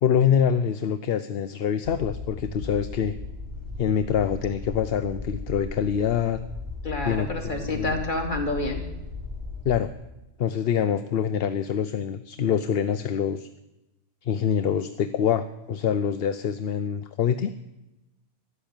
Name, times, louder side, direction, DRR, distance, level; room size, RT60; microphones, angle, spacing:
voice 1, 0.0-3.2 3.8-6.4 7.0-8.0 9.6-9.9 10.4-13.5 14.2-17.5, left 8 dB, 60° left, 11 dB, 0.8 m, -25 dB
sound 1, 1.8-9.8, left 3 dB, 15° right, 4.1 m, -37 dB
voice 2, 6.8-8.8, left 2 dB, 40° left, 2 dB, 2.8 m, -28 dB
13.0 x 11.5 x 8.9 m, 0.96 s
omnidirectional pair, 1.2 m